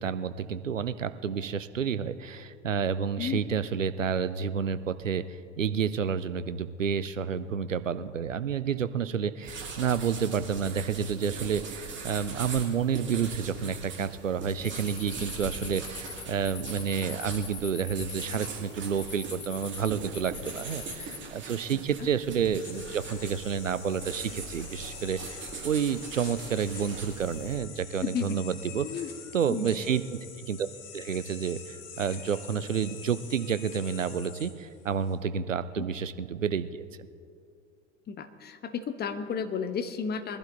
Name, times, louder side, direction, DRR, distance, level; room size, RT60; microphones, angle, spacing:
voice 1, 0.0-5.2 5.6-28.9 29.3-30.2 30.5-30.7 30.9-36.8, right 7 dB, 85° right, 13 dB, 0.6 m, -30 dB
sound 1, 9.4-27.6, right 4 dB, 30° right, 2.7 m, -41 dB
sound 2, 14.6-21.2, left 5 dB, 70° left, 2.2 m, -43 dB
voice 2, 21.7-22.1 28.0-28.3 28.8-29.1 29.5-29.7 35.8-35.9 38.1-40.4, left 7 dB, 25° left, 9 dB, 1.1 m, -33 dB
sound 3, 22.3-35.2, left 6 dB, 40° left, 2.0 m, -46 dB
21.5 x 12.0 x 3.9 m, 2.4 s
figure-of-eight pair, 80°, 37 cm